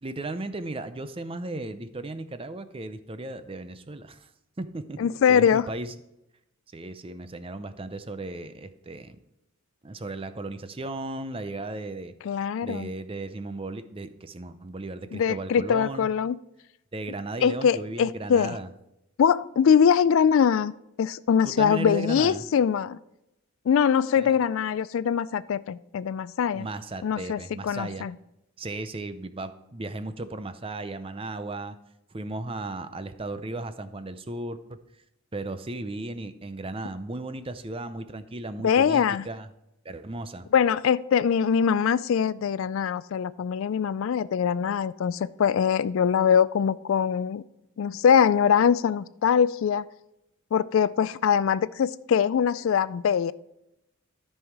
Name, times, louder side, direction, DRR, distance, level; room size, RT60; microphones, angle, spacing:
voice 1, 0.0-4.3 4.6-5.9 6.7-9.2 9.8-12.1 12.6-16.1 16.9-18.7 21.4-22.4 24.2-24.4 26.6-28.1 28.6-31.8 32.1-34.6 35.3-39.5 39.8-40.5, right 2 dB, 25° right, 11 dB, 0.5 m, -35 dB
voice 2, 5.0-5.7 12.2-12.9 15.1-16.4 17.4-18.6 19.2-20.7 21.0-23.0 23.7-26.7 27.0-28.2 38.6-39.3 40.5-47.4 47.8-49.8 50.5-53.3, left 7 dB, 65° left, 18 dB, 0.3 m, -23 dB
13.0 x 5.6 x 4.7 m, 0.87 s
head